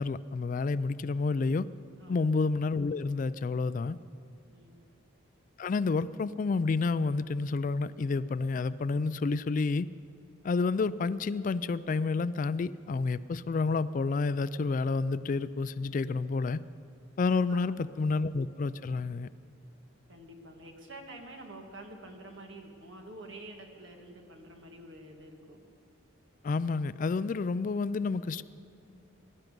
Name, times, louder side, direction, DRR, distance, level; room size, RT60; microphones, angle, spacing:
voice 1, 0.0-1.7 2.1-4.0 5.6-9.9 10.4-16.6 17.2-19.3 26.4-28.4, left 4 dB, 40° left, 16 dB, 0.3 m, -29 dB
voice 2, 4.5-4.8 17.5-17.8 20.1-25.6, right 1 dB, 65° right, 2 dB, 2.0 m, -48 dB
21.0 x 12.0 x 5.2 m, 2.7 s
head